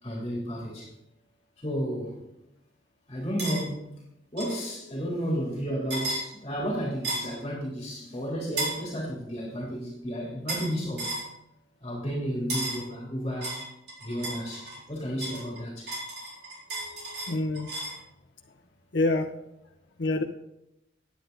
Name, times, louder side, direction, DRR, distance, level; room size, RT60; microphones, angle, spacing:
voice 1, 0.0-0.9 1.6-2.2 3.1-3.9 4.3-11.1 11.8-13.5 14.0-15.9, equal, 25° left, -3 dB, 3.0 m, -32 dB
sound 1, 3.4-3.6 4.4-4.6 5.9-6.2 7.0-7.4 8.6-8.8 10.5-10.7 11.0-11.3 12.5-12.8 13.4-14.8 15.2-18.0, right 2 dB, 65° right, 3.8 m, -33 dB
voice 2, 16.7-17.7 18.9-19.3 20.0-20.2, left 2 dB, 80° left, 2 dB, 0.8 m, -28 dB
10.0 x 9.5 x 3.9 m, 0.84 s
head